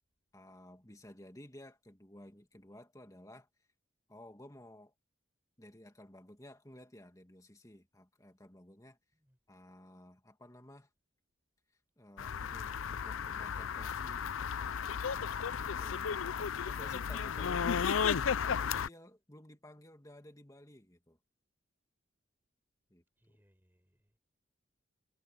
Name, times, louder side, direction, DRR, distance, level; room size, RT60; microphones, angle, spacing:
voice 1, 0.3-3.5 4.1-4.9 5.6-9.0 9.5-10.9 12.0-14.8 15.1-16.1 16.6-17.9 18.4-21.2 22.9-23.4, left 1 dB, 15° left, 2.5 m, -55 dB
sound 1, 12.2-18.9, left 7 dB, 85° left, 0.5 m, -34 dB
voice 2, 23.2-24.2, equal, 10° right, 5.9 m, -72 dB
head